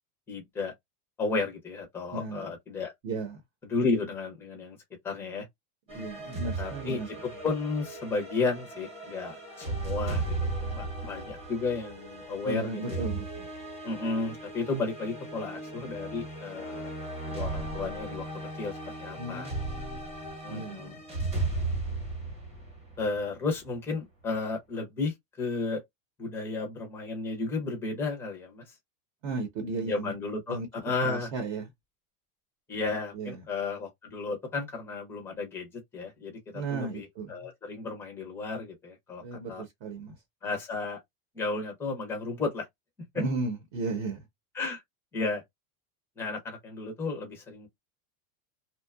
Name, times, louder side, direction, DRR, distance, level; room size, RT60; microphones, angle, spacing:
voice 1, 0.3-0.7 1.2-2.9 3.7-4.8 5.0-5.5 6.6-13.0 13.8-16.9 17.3-18.2 18.6-19.5 20.4-21.0 23.0-25.8 26.2-28.6 29.7-31.3 32.7-39.6 40.4-41.0 41.3-42.7 44.5-44.8 45.1-45.4 46.2-47.7, left 3 dB, 5° left, 0.5 m, -33 dB
voice 2, 2.1-2.5 3.0-3.4 5.9-7.1 12.4-13.5 19.2-20.1 20.5-21.0 29.2-30.1 30.5-30.7 31.0-31.7 33.1-33.4 36.5-37.5 39.2-40.2 43.1-44.2, right 3 dB, 50° right, 0.8 m, -35 dB
sound 1, 5.9-23.5, right 2 dB, 15° right, 0.9 m, -36 dB
2.7 x 2.2 x 2.3 m
supercardioid pair, 175°, 42 cm